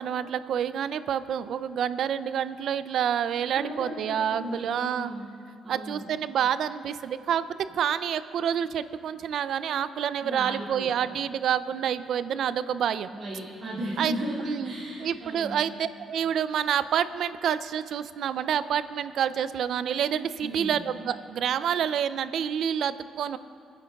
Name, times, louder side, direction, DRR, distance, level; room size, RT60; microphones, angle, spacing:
voice 1, 0.0-5.1 5.7-7.5 7.7-13.1 14.0-14.1 14.4-14.7 15.0-23.4, right 9 dB, 70° right, 14 dB, 0.4 m, -28 dB
voice 2, 3.5-5.3 5.6-6.1 10.2-11.1 13.1-15.6 20.4-20.8, right 1 dB, 55° right, -7 dB, 2.3 m, -35 dB
26.5 x 9.9 x 2.3 m, 2.5 s
cardioid pair, 90°, 0 cm